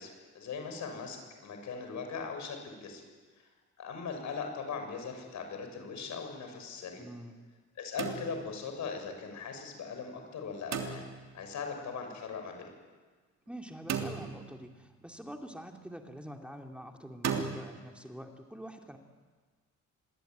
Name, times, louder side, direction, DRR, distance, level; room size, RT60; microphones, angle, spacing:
voice 1, 0.0-3.0 3.8-7.0 7.8-11.0 11.3-12.7, left 5 dB, 70° left, 5 dB, 6.7 m, -39 dB
voice 2, 7.0-7.4 13.5-19.0, equal, 5° right, 3 dB, 2.5 m, -45 dB
sound 1, 8.0-8.7 10.7-11.4 13.9-14.8 17.2-17.6, right 7 dB, 60° right, 3.2 m, -36 dB
26.5 x 21.0 x 9.3 m, 1.4 s
cardioid pair, 90°, 30 cm